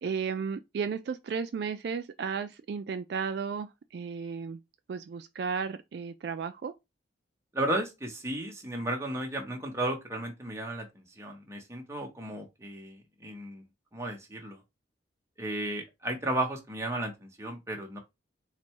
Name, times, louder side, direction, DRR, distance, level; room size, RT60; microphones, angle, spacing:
voice 1, 0.0-4.6 4.9-6.7, right 6 dB, 55° right, 0.3 m, -34 dB
voice 2, 7.5-13.6 13.9-14.6 15.4-18.0, right 1 dB, 15° right, 0.9 m, -34 dB
4.0 x 2.2 x 4.5 m
head